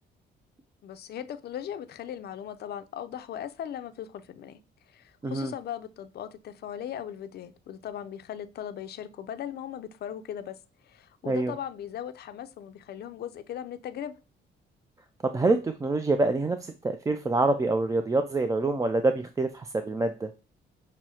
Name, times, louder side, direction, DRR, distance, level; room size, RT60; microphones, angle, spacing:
voice 1, 0.8-4.6 4.9-10.6 10.8-14.1, left 10 dB, 55° left, 0.4 m, -38 dB
voice 2, 15.2-20.3, right 2 dB, 15° right, 0.3 m, -26 dB
6.1 x 2.1 x 2.8 m
cardioid pair, 90°, 20 cm